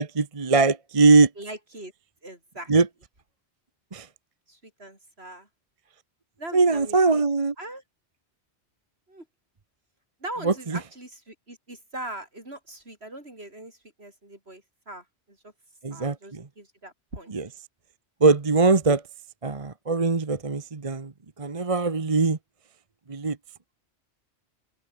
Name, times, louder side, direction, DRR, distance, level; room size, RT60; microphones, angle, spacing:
voice 1, 0.0-1.3 2.7-2.9 3.9-4.1 6.5-7.5 10.4-10.8 15.8-16.5 17.3-17.4 18.2-19.0 19.4-22.4 23.1-23.4, right 4 dB, 30° right, 1.1 m, -21 dB
voice 2, 1.4-1.9 2.2-2.7 4.5-5.5 6.4-7.2 7.6-7.8 9.1-9.3 10.2-15.5 15.9-17.3, right 1 dB, 65° right, 6.9 m, -41 dB
omnidirectional pair, 1.1 m